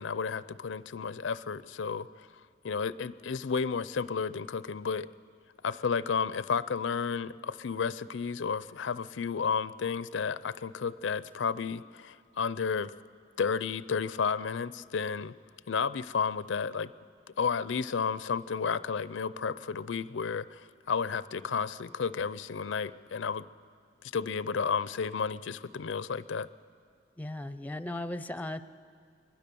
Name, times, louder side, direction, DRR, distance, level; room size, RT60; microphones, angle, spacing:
voice 1, 0.0-2.3 2.6-5.1 5.6-12.9 13.4-15.3 15.7-16.9 17.4-23.5 24.1-26.5, left 5 dB, 90° left, 17 dB, 0.5 m, -32 dB
voice 2, 27.2-28.6, left 1 dB, 10° left, 12 dB, 0.5 m, -36 dB
23.5 x 20.5 x 6.9 m, 2.3 s
head